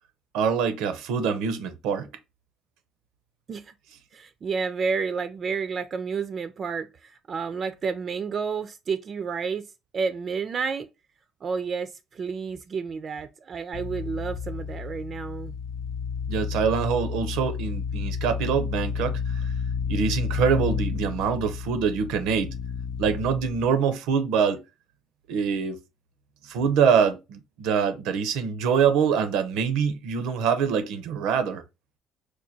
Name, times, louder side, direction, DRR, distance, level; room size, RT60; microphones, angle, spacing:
voice 1, 0.3-2.1 16.3-19.2 19.9-22.5 23.0-24.6 25.3-25.8 26.5-31.6, right 6 dB, 90° right, 0.6 m, -24 dB
voice 2, 4.1-9.6 9.9-10.9 11.4-15.5, right 5 dB, 40° right, 0.3 m, -30 dB
sound 1, 13.7-23.7, left 6 dB, 65° left, 0.4 m, -31 dB
4.6 x 2.2 x 2.6 m
cardioid pair, 115°, 0 cm